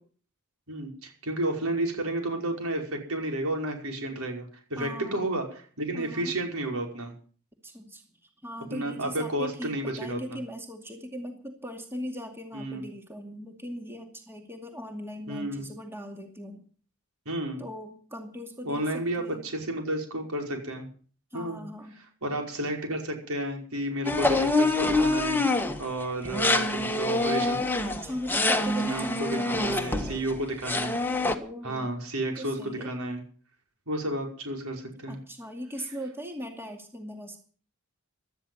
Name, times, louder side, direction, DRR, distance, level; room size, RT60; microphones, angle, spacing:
voice 1, 0.7-7.2 8.7-10.4 12.5-12.8 15.3-15.7 17.3-17.6 18.6-20.9 21.3-21.6 22.2-27.6 28.8-31.0 31.6-33.2 33.9-35.2, right 1 dB, 75° right, 2 dB, 5.4 m, -32 dB
voice 2, 4.8-5.2 5.9-6.3 7.6-8.0 8.4-16.6 17.6-19.5 21.3-22.0 27.8-30.2 31.4-31.9 32.4-32.9 35.1-37.4, equal, 10° right, 4 dB, 2.4 m, -39 dB
sound 1, 24.0-25.8 26.2-30.4 30.6-31.3, left 2 dB, 10° left, 1.5 m, -26 dB
17.0 x 12.5 x 5.6 m, 0.43 s
head